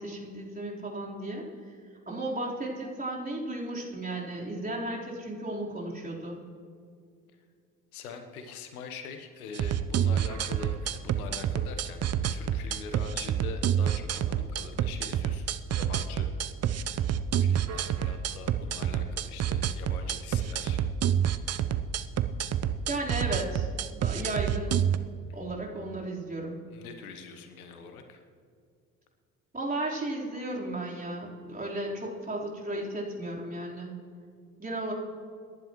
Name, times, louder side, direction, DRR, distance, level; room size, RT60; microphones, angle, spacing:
voice 1, 0.0-1.4 2.1-6.4 22.9-24.8 25.3-26.6 29.5-33.9 34.6-34.9, right 1 dB, 20° right, -4 dB, 4.0 m, -34 dB
voice 2, 7.9-12.0 12.3-16.3 16.7-20.8 21.3-21.5 26.7-28.2, left 5 dB, 80° left, 6 dB, 1.1 m, -44 dB
sound 1, 9.5-25.0, right 9 dB, 35° right, 0.7 m, -28 dB
27.0 x 11.0 x 3.1 m, 2.2 s
hypercardioid pair, 50°, 43 cm